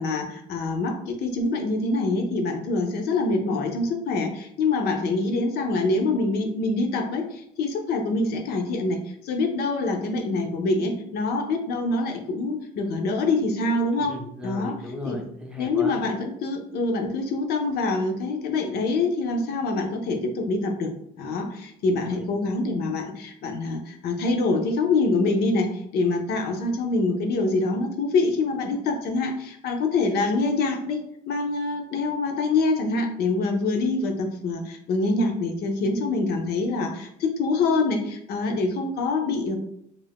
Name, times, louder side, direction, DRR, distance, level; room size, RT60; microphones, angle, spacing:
voice 1, 0.0-9.0 9.2-14.1 14.4-14.7 15.0-15.2 15.6-20.9 21.2-31.0 31.3-39.6, left 3 dB, 70° left, 3 dB, 0.5 m, -25 dB
voice 2, 13.9-16.0 22.1-22.3, left 1 dB, 5° right, 0 dB, 0.5 m, -36 dB
2.4 x 2.1 x 3.4 m, 0.71 s
cardioid pair, 110°, 17 cm